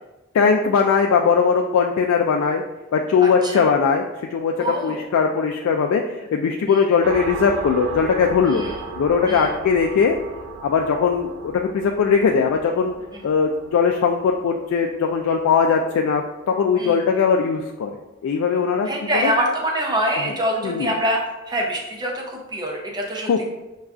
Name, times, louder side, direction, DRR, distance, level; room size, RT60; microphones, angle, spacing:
voice 1, 0.3-2.6 2.9-4.0 4.3-4.5 4.8-8.6 9.0-10.2 10.6-12.9 13.2-17.9 18.2-18.9 19.2-19.3 20.6-20.9 23.3-23.5, left 6 dB, 90° left, 2 dB, 0.3 m, -19 dB
voice 2, 3.2-3.7 4.6-5.0 6.6-6.8 8.5-8.8 9.3-9.5 13.1-13.2 16.8-17.0 18.9-23.5, right 1 dB, 20° right, -1 dB, 0.6 m, -25 dB
sound 1, 7.0-16.3, right 4 dB, 70° right, 0.4 m, -36 dB
6.4 x 2.3 x 2.4 m, 1.0 s
head